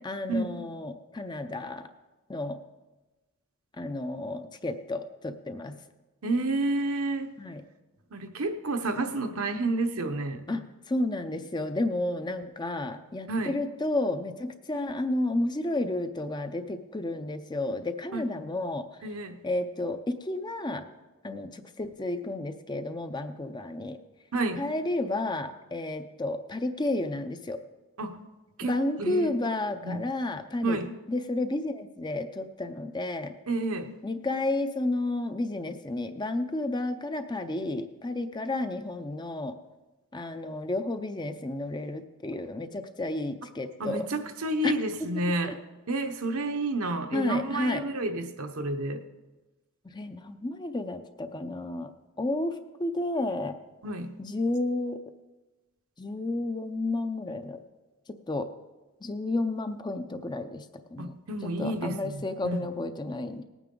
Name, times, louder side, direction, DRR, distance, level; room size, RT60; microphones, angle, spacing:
voice 1, 0.0-1.8 2.3-2.6 3.8-5.8 7.4-7.6 10.5-18.9 19.4-20.9 21.2-24.0 24.6-27.6 28.6-30.8 31.1-33.3 34.0-39.6 40.1-44.1 44.6-44.8 45.4-45.5 47.1-47.8 49.9-51.9 52.2-53.6 54.2-55.0 56.0-57.6 58.3-58.5 59.0-60.6 60.9-61.1 61.4-63.4, left 2 dB, 20° left, 8 dB, 0.5 m, -31 dB
voice 2, 6.2-7.3 8.1-10.4 13.3-13.6 18.1-18.3 19.0-19.4 24.3-24.6 28.0-28.2 28.6-29.3 29.8-30.1 30.6-30.9 33.5-33.9 43.8-45.6 45.9-49.0 53.8-54.2 61.0-62.6, right 2 dB, 70° right, 6 dB, 0.9 m, -30 dB
18.5 x 9.2 x 3.8 m, 1.2 s
head